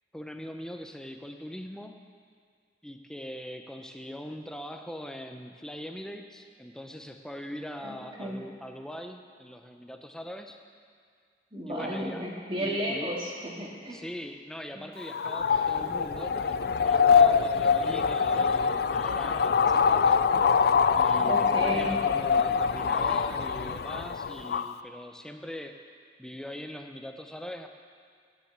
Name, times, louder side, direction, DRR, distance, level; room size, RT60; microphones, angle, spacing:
voice 1, 0.1-2.0 2.8-10.6 11.7-12.2 12.6-13.1 13.9-20.2 20.9-25.7 26.2-27.7, equal, 5° left, 5 dB, 0.6 m, -41 dB
voice 2, 7.8-8.4 11.5-14.0 15.5-15.6 21.2-21.9, equal, 30° right, -3 dB, 2.1 m, -33 dB
sound 1, 15.0-24.7, left 6 dB, 55° left, 0.4 m, -24 dB
10.0 x 9.7 x 8.2 m, 2.1 s
head